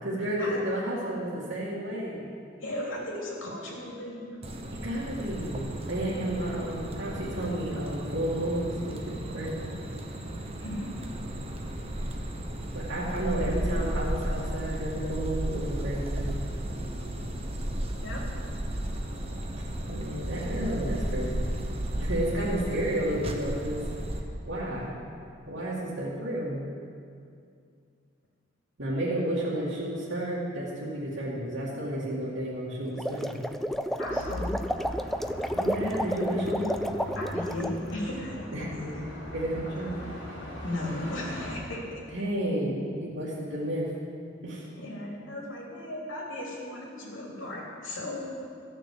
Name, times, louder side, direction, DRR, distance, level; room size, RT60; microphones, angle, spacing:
voice 1, 0.0-2.3 4.7-9.7 12.7-16.3 19.9-21.5 22.0-23.8 24.4-25.0 25.5-26.6 28.8-33.3 35.5-36.8 38.5-38.7 39.3-39.9 42.1-43.9 44.4-44.7, right 1 dB, 90° right, -10 dB, 2.2 m, -31 dB
voice 2, 2.6-4.4 10.6-11.0 18.0-18.2 34.0-34.6 37.2-39.1 40.6-42.0 44.8-48.3, left 1 dB, 85° left, -3 dB, 3.0 m, -36 dB
sound 1, 4.4-24.2, right 1 dB, 30° right, 1.1 m, -34 dB
sound 2, 32.9-37.8, equal, ahead, 0.4 m, -31 dB
sound 3, 34.0-41.6, left 1 dB, 65° left, 3.6 m, -40 dB
14.0 x 6.6 x 7.8 m, 2.4 s
head